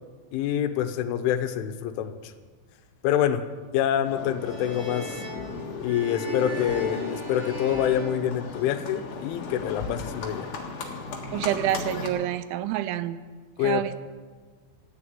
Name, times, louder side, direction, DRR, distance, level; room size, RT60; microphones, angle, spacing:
voice 1, 0.3-2.3 3.0-3.5 3.7-5.2 5.8-10.5 13.6-13.8, left 10 dB, 85° left, 9 dB, 3.3 m, -26 dB
Livestock farm animals working animals, 4.0-12.1, left 4 dB, 55° left, 2.5 m, -36 dB
sound 1, 4.4-9.0, right 2 dB, 30° right, 2.6 m, -40 dB
voice 2, 11.3-13.2 13.6-13.9, right 12 dB, 85° right, 13 dB, 2.9 m, -27 dB
14.5 x 9.7 x 8.9 m, 1.4 s
omnidirectional pair, 5.5 m